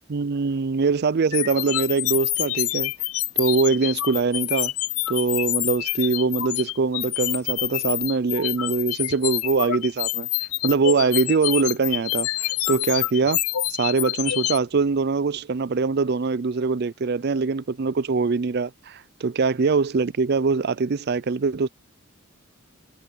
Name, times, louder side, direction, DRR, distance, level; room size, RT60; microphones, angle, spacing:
voice 1, 0.1-2.9 3.4-4.7 5.1-10.3 10.6-13.4 13.8-21.7, right 4 dB, 50° right, 0.4 m, -23 dB
sound 1, 1.3-14.6, left 16 dB, 85° left, 0.5 m, -27 dB
head